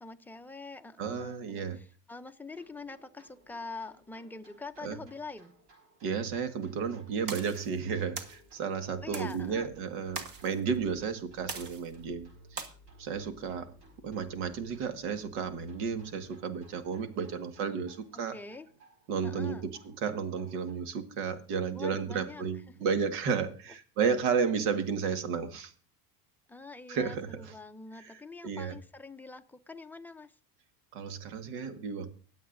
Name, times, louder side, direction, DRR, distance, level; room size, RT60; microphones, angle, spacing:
voice 1, 0.0-5.5 9.0-9.7 18.3-18.7 19.2-19.6 21.7-22.4 26.5-30.3, left 3 dB, 5° left, 6 dB, 0.5 m, -45 dB
voice 2, 1.0-1.8 4.8-5.0 6.0-12.7 13.0-13.7 14.0-18.4 19.1-25.7 26.9-27.6 28.0-28.8 30.9-32.1, right 6 dB, 75° right, 9 dB, 1.8 m, -33 dB
sound 1, 2.5-20.7, right 1 dB, 90° right, 5.2 m, -59 dB
sound 2, 7.3-7.7 8.2-8.4 9.1-9.4 10.2-10.5 11.5-12.0 12.6-12.7, right 5 dB, 45° right, 1.7 m, -40 dB
24.0 x 8.0 x 2.6 m, 0.40 s
supercardioid pair, 110°, 49 cm